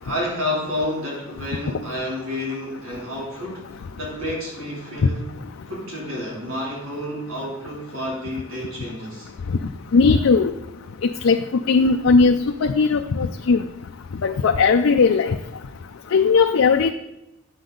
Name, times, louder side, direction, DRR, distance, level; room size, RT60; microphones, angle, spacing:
voice 1, 0.0-5.2 5.7-9.3, left 1 dB, 90° right, -4 dB, 3.1 m, -30 dB
voice 2, 9.9-10.5 11.0-11.4 11.7-13.6 14.2-15.4 16.1-16.9, left 4 dB, 75° left, 5 dB, 0.4 m, -17 dB
9.5 x 7.5 x 3.9 m, 0.91 s
head